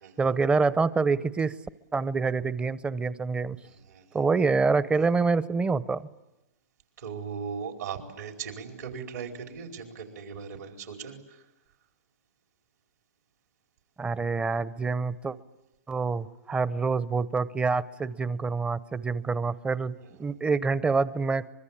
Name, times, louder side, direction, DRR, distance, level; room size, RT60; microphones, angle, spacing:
voice 1, 0.0-1.5 1.9-3.6 4.1-6.0 14.0-15.4 15.9-19.9 20.2-21.5, right 4 dB, 10° right, 17 dB, 0.8 m, -26 dB
voice 2, 3.6-4.2 7.0-11.4, right 6 dB, 75° right, 3 dB, 4.8 m, -38 dB
24.5 x 23.0 x 8.8 m, 0.99 s
hypercardioid pair, 125°, 9 cm